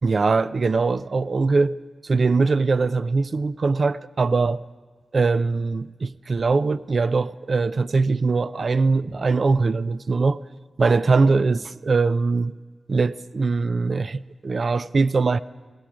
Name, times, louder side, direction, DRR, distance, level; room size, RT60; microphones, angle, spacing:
voice 1, 0.0-1.8 2.0-4.6 5.1-10.4 10.8-12.5 12.9-15.4, right 4 dB, 55° right, 0.4 m, -21 dB
16.0 x 14.5 x 5.0 m
wide cardioid pair, 80°, 0 cm